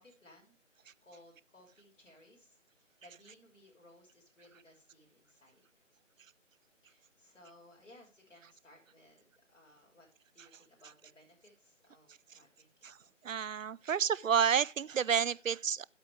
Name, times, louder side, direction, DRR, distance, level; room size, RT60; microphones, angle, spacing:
voice 1, 0.0-5.8 6.8-13.3, left 1 dB, 75° left, 5.9 m, -61 dB
voice 2, 13.2-15.8, right 7 dB, 90° right, 0.6 m, -30 dB
14.0 x 8.2 x 3.2 m
figure-of-eight pair, 160°, 38 cm